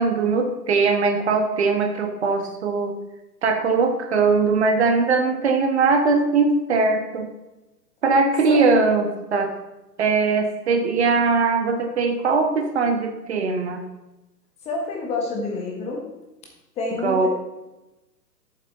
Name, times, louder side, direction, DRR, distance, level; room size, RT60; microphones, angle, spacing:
voice 1, 0.0-2.9 3.4-7.3 8.0-9.5 10.0-13.8 17.0-17.3, right 4 dB, 40° right, 5 dB, 1.4 m, -20 dB
voice 2, 14.6-16.1 16.8-17.3, left 3 dB, 10° left, -1 dB, 1.4 m, -27 dB
12.5 x 7.5 x 4.1 m, 1.0 s
figure-of-eight pair, 125°, 50 cm